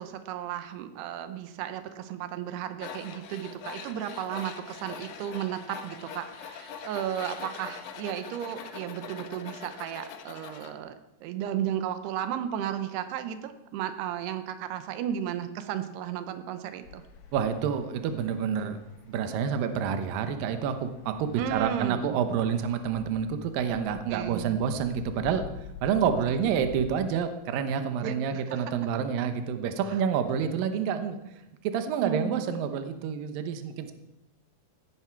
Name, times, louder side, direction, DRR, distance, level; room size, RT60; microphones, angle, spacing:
voice 1, 0.0-10.9 11.2-17.0 21.4-22.1 24.1-24.6 26.2-26.3 28.0-28.6 29.9-30.0 32.0-32.3, right 10 dB, 90° right, 9 dB, 3.0 m, -34 dB
Tools, 2.8-10.7, left 7 dB, 85° left, 1.4 m, -42 dB
sound 1, 16.8-26.9, left 6 dB, 60° left, 2.8 m, -48 dB
voice 2, 17.3-18.8 19.1-25.5 25.8-31.2 31.7-33.9, right 7 dB, 70° right, 8 dB, 2.6 m, -28 dB
16.5 x 12.0 x 4.7 m, 0.91 s
omnidirectional pair, 4.6 m